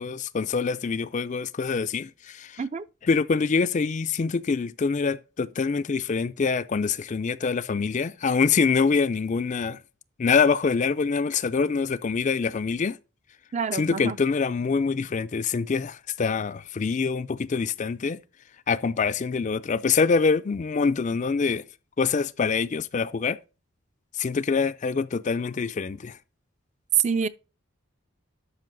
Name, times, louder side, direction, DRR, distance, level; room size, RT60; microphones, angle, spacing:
voice 1, 0.0-2.6 3.1-9.8 10.2-13.0 13.7-18.2 18.7-21.6 22.0-23.4 24.2-26.2, left 5 dB, 35° left, 0.4 m, -25 dB
voice 2, 13.5-14.2 27.0-27.3, right 7 dB, 35° right, 0.4 m, -26 dB
12.0 x 5.6 x 3.9 m
head